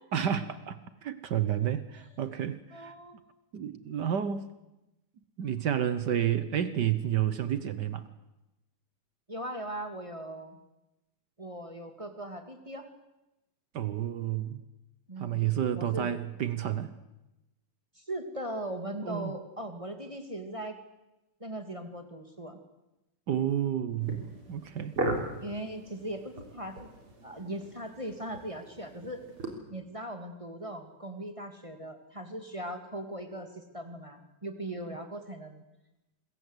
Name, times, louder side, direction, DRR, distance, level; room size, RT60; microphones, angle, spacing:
voice 1, 0.1-2.9 3.5-4.4 5.4-8.0 13.7-14.6 15.2-16.9 19.0-19.3 23.3-25.0 34.9-35.0, right 10 dB, 70° right, 12 dB, 1.0 m, -30 dB
voice 2, 2.7-3.2 9.3-10.6 11.4-12.9 15.1-16.2 18.0-20.8 21.4-22.6 25.4-26.9 27.2-29.2 29.7-35.6, right 1 dB, 15° right, 6 dB, 1.8 m, -39 dB
sound 1, 24.0-29.6, right 2 dB, 45° right, 4.3 m, -38 dB
26.5 x 22.0 x 8.1 m, 0.97 s
omnidirectional pair, 3.5 m